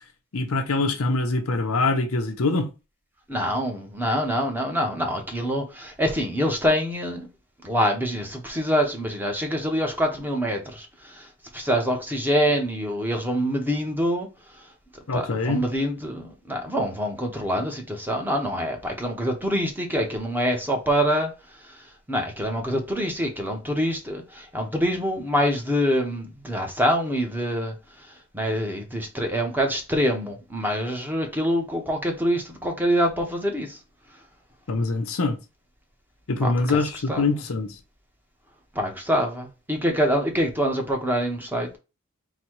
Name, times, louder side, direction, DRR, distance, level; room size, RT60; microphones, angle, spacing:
voice 1, 0.3-2.7 15.1-15.6 34.7-35.4 36.3-37.7, left 3 dB, 80° left, 0.7 m, -24 dB
voice 2, 3.3-7.3 7.6-11.3 11.5-14.3 15.1-21.3 22.1-27.7 28.3-33.8 36.4-36.8 37.1-37.2 38.7-41.8, equal, 10° right, 1.0 m, -25 dB
4.0 x 2.3 x 4.6 m
head